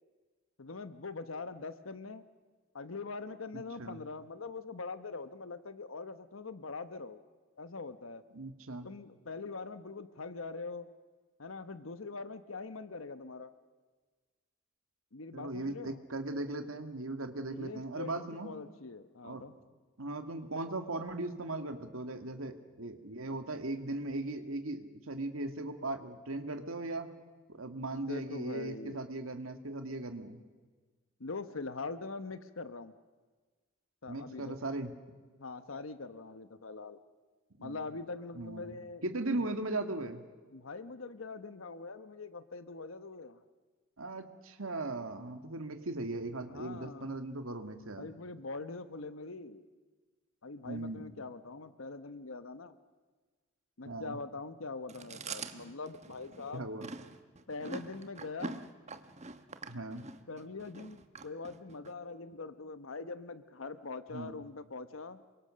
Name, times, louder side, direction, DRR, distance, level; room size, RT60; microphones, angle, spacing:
voice 1, 0.6-2.2 2.7-7.2 7.6-8.2 8.8-10.9 11.4-13.5 15.1-16.0 17.5-19.5 28.1-29.0 31.2-32.9 34.0-34.6 35.4-37.0 37.6-39.0 39.3-39.5 40.5-43.4 46.5-47.2 48.0-49.7 50.4-52.8 53.8-56.7 57.5-58.6 60.3-65.2, left 3 dB, 75° left, 12 dB, 1.0 m, -43 dB
voice 2, 3.5-4.0 8.3-8.9 15.3-18.5 19.2-19.5 20.0-27.1 27.5-30.4 34.1-34.9 37.6-37.9 38.4-38.8 39.0-40.2 44.0-48.1 50.7-51.0 53.9-54.2 56.5-56.9 59.7-60.1 64.1-64.4, right 2 dB, 85° right, 7 dB, 2.1 m, -38 dB
Chewing mastication, 54.9-61.9, right 3 dB, 35° right, 1.2 m, -45 dB
28.0 x 24.0 x 6.4 m, 1.4 s
head